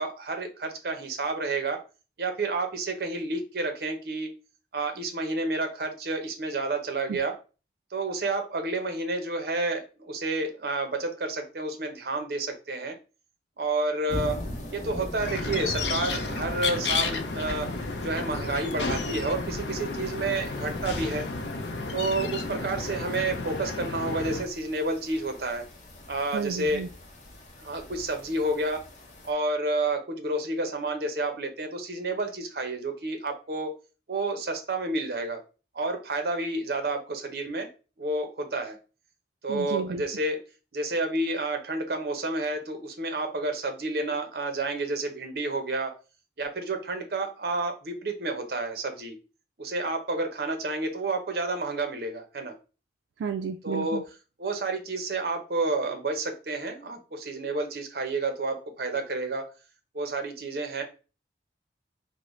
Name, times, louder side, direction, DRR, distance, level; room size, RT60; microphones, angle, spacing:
voice 1, 0.0-1.8 2.2-4.3 4.7-7.3 7.9-12.9 13.6-14.4 14.7-17.7 18.0-21.2 21.9-25.6 26.1-26.8 27.6-28.8 29.2-33.7 34.1-35.4 35.7-37.7 38.0-38.8 39.4-40.4 40.7-45.9 46.4-49.2 49.6-52.5 53.6-54.0 54.4-59.4 59.9-60.8, right 2 dB, 60° right, 5 dB, 0.6 m, -30 dB
sound 1, 14.1-29.3, equal, 40° left, 0.7 m, -40 dB
sound 2, 15.2-24.4, left 4 dB, 80° left, 0.5 m, -32 dB
voice 2, 26.3-26.9 39.5-40.0 53.2-54.0, right 6 dB, 90° right, 6 dB, 0.3 m, -32 dB
3.8 x 2.0 x 3.1 m, 0.33 s
head